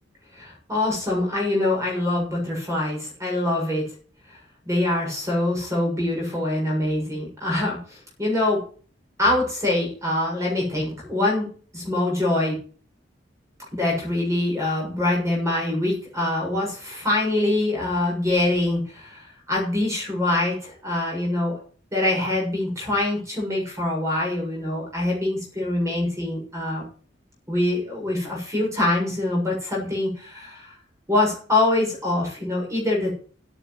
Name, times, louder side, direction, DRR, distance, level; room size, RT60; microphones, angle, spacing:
voice 1, 0.4-3.9 4.3-4.4 4.7-8.6 9.2-11.5 11.7-12.6 13.7-21.6 21.9-26.8 27.5-30.7 31.1-33.1, left 1 dB, 15° right, -2 dB, 7.1 m, -24 dB
10.0 x 9.0 x 9.5 m, 0.43 s
head